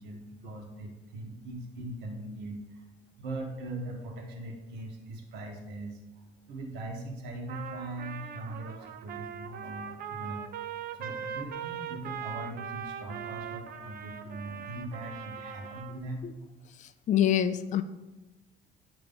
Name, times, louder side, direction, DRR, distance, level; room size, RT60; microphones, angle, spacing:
voice 1, 0.0-2.8 3.2-6.0 6.3-10.4 10.9-16.2, right 2 dB, 90° right, 1 dB, 1.2 m, -40 dB
Trumpet, 7.5-16.0, right 8 dB, 60° right, 0.7 m, -40 dB
voice 2, 16.8-17.8, left 10 dB, 45° left, 10 dB, 0.4 m, -26 dB
8.8 x 3.0 x 5.2 m, 1.1 s
cardioid pair, 110°, 17 cm